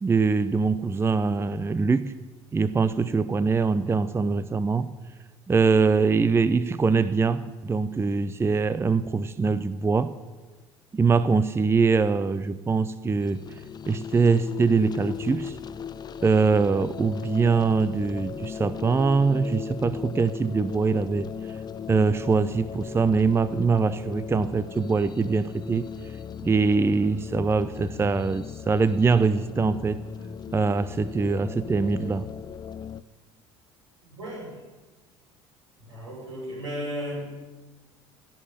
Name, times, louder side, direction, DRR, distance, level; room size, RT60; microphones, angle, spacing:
voice 1, 0.0-2.1 2.5-4.9 5.5-10.1 10.9-13.4 13.9-15.6 16.2-21.3 21.9-25.9 26.4-30.0 30.5-32.3, right 4 dB, 15° right, 15 dB, 0.6 m, -23 dB
sound 1, 13.2-33.0, left 7 dB, 30° left, 0.5 m, -37 dB
voice 2, 34.2-34.6 35.8-37.3, equal, 85° right, -3 dB, 6.1 m, -34 dB
16.0 x 6.7 x 9.7 m, 1.3 s
figure-of-eight pair, 65°, 15 cm